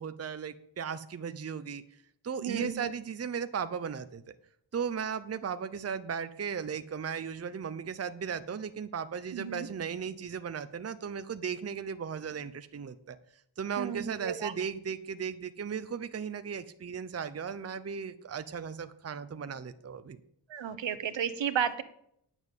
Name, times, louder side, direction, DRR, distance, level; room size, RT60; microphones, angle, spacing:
voice 1, 0.0-1.8 2.2-4.3 4.7-13.2 13.6-20.2, right 7 dB, 35° right, 11 dB, 0.7 m, -36 dB
voice 2, 2.4-2.9 9.3-9.7 13.8-14.5 20.5-21.8, right 8 dB, 80° right, 12 dB, 1.1 m, -33 dB
9.3 x 7.1 x 8.2 m, 0.71 s
wide cardioid pair, 125°, 44 cm